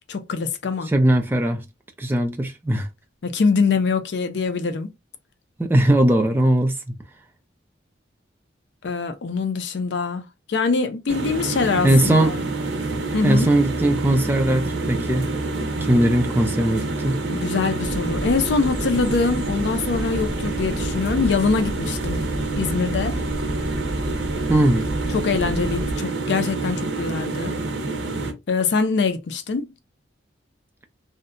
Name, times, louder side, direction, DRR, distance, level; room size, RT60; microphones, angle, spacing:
voice 1, 0.1-0.9 3.2-4.9 8.8-12.4 13.1-13.5 17.3-22.2 22.6-23.2 25.1-27.5 28.5-29.7, left 4 dB, 65° left, 0.4 m, -23 dB
voice 2, 0.9-1.6 2.0-2.9 5.6-6.7 11.8-12.4 13.2-15.3 15.8-17.2 24.5-24.9, right 1 dB, 10° right, 0.3 m, -19 dB
sound 1, 11.1-28.3, right 2 dB, 85° right, 0.6 m, -27 dB
sound 2, 17.8-26.0, equal, 15° left, 1.5 m, -32 dB
2.7 x 2.1 x 2.4 m
head